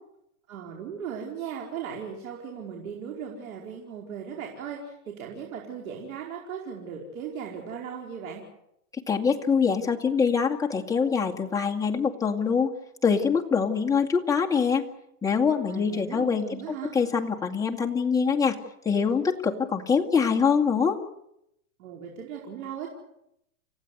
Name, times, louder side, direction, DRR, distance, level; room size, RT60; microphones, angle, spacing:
voice 1, 0.5-8.4 15.7-16.9 21.8-22.9, right 7 dB, 70° right, -1 dB, 5.0 m, -37 dB
voice 2, 9.1-12.7 13.0-14.8 15.2-18.6 18.8-21.0, left 6 dB, 10° left, -2 dB, 2.2 m, -24 dB
29.5 x 15.5 x 8.2 m, 0.80 s
supercardioid pair, 150°, 44 cm